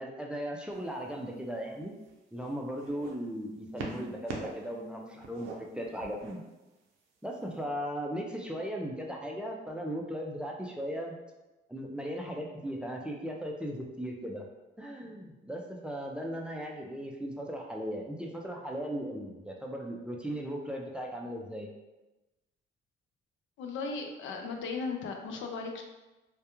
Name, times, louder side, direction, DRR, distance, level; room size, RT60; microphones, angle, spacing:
voice 1, 0.0-1.9 2.3-6.5 7.2-11.2 11.7-14.5 14.8-21.7, equal, 5° right, 0 dB, 0.4 m, -37 dB
sound 1, 0.7-1.0 1.8-3.1 3.8-4.7 5.0-6.3 7.2-7.3, right 3 dB, 85° right, 0.5 m, -41 dB
voice 2, 23.6-25.8, left 4 dB, 80° left, 3 dB, 0.4 m, -36 dB
2.3 x 2.2 x 2.9 m, 1.1 s
cardioid pair, 90°, 20 cm